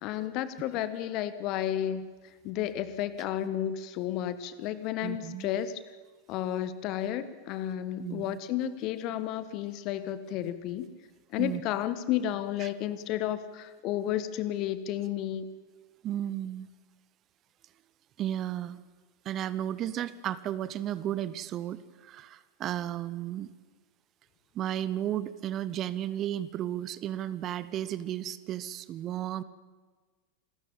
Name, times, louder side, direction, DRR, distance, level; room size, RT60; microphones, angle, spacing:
voice 1, 0.0-2.1 2.4-5.8 6.3-10.9 11.3-15.5, left 11 dB, 40° left, 14 dB, 1.5 m, -32 dB
voice 2, 5.0-5.5 8.0-8.4 11.4-11.6 12.6-12.7 16.0-16.7 18.2-18.8 19.2-23.5 24.5-29.4, right 11 dB, 30° right, 16 dB, 0.9 m, -34 dB
27.5 x 13.5 x 9.0 m, 1.4 s
figure-of-eight pair, 90°, 0 cm